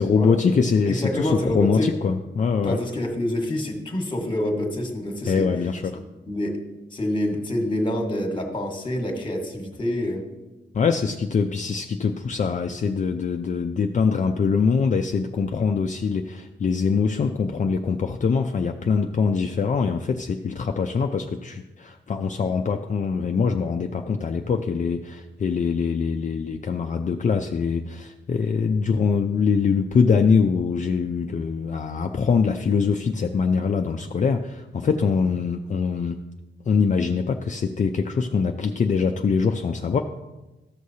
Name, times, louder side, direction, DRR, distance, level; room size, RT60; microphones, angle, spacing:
voice 1, 0.0-2.8 5.2-6.0 10.7-36.2 36.6-40.0, left 5 dB, 40° left, 4 dB, 0.4 m, -23 dB
voice 2, 0.8-1.9 2.6-5.5 6.3-6.6 6.9-10.2, left 1 dB, 25° left, 3 dB, 1.4 m, -27 dB
14.0 x 6.3 x 2.8 m, 1.1 s
wide cardioid pair, 135°, 20 cm